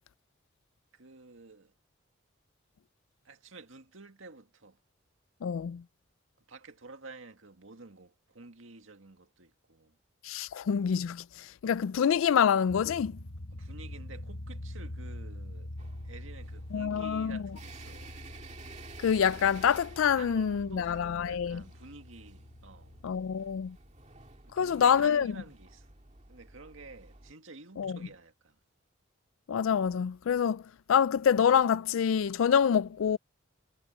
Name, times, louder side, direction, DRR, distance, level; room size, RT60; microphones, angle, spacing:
voice 1, 0.9-1.7 3.2-4.8 6.5-10.0 13.5-15.7 16.0-18.2 20.2-23.0 24.5-25.9 26.3-28.6, right 3 dB, 80° right, 2.1 m, -50 dB
voice 2, 5.4-5.8 10.2-13.2 16.7-17.4 19.0-21.6 23.0-23.8 24.5-25.3 27.8-28.0 29.5-30.6 30.9-33.2, left 7 dB, 80° left, 0.4 m, -26 dB
sound 1, 12.7-23.1, left 1 dB, 60° left, 1.3 m, -44 dB
sound 2, 15.8-27.3, right 3 dB, 35° right, 2.2 m, -52 dB
head